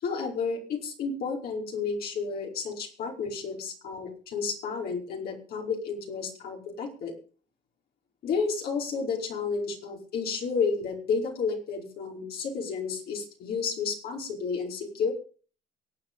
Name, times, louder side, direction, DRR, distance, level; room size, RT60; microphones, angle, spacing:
voice 1, 0.0-7.1 8.2-15.1, left 5 dB, 65° left, 0 dB, 5.1 m, -31 dB
23.5 x 8.6 x 5.4 m, 0.41 s
cardioid pair, 110°, 17 cm